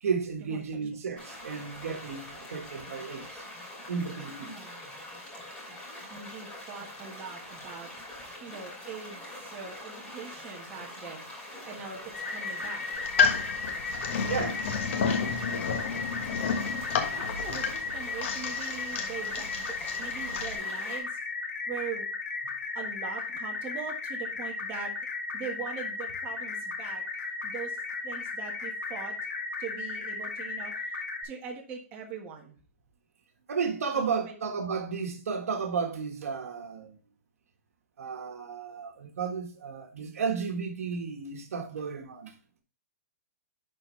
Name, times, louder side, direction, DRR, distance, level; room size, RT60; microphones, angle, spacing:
voice 1, 0.0-3.5 3.9-4.6 14.3-14.6 22.4-22.5 33.5-37.0 38.0-42.3, right 5 dB, 80° right, 1.6 m, -33 dB
sound 1, 1.2-21.0, left 1 dB, 10° left, 2.8 m, -44 dB
voice 2, 4.4-4.9 6.1-8.1 8.4-11.3 11.6-13.0 14.8-15.1 17.1-21.2 21.7-22.1 22.7-24.9 25.3-27.0 27.4-27.8 28.0-29.1 29.6-32.6 33.9-34.3, right 6 dB, 20° right, 1.4 m, -42 dB
sound 2, 12.1-31.2, left 4 dB, 80° left, 2.2 m, -35 dB
sound 3, 12.9-20.6, left 6 dB, 55° left, 1.4 m, -31 dB
11.0 x 4.3 x 3.2 m
hypercardioid pair, 160°, 8 cm